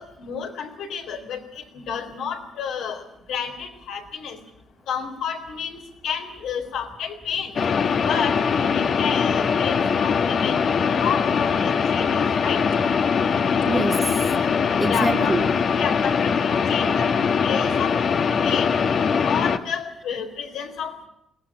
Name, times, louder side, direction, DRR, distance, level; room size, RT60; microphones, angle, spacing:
voice 1, 0.0-3.0 3.3-4.4 4.9-7.5 8.0-10.6 11.0-12.6 14.9-15.3 15.8-17.1 17.4-18.0 18.4-18.7 19.2-21.1, left 7 dB, 85° left, 4.0 m, -30 dB
sound 1, 7.6-19.6, left 6 dB, 55° left, 1.4 m, -22 dB
voice 2, 13.6-14.3 14.6-16.2 17.6-17.8, right 1 dB, 15° right, 2.1 m, -27 dB
21.5 x 17.5 x 8.7 m
cardioid pair, 90°, 0 cm